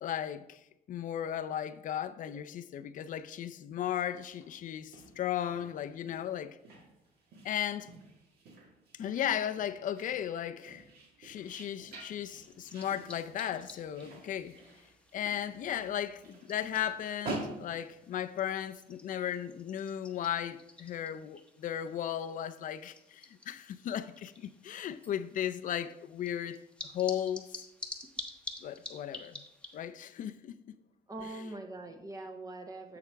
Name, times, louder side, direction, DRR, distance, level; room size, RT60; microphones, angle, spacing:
voice 1, 0.0-0.6 0.9-6.6 7.4-7.9 8.9-10.8 11.2-14.6 15.1-27.6 28.6-29.4 29.7-30.6, left 10 dB, 50° left, 0.5 m, -36 dB
sound 1, 4.2-18.7, right 2 dB, 65° right, 1.7 m, -48 dB
sound 2, 12.2-29.9, left 1 dB, 5° left, 0.8 m, -50 dB
voice 2, 31.1-33.0, right 2 dB, 20° right, 0.7 m, -43 dB
7.1 x 6.8 x 3.4 m
cardioid pair, 110°, 17 cm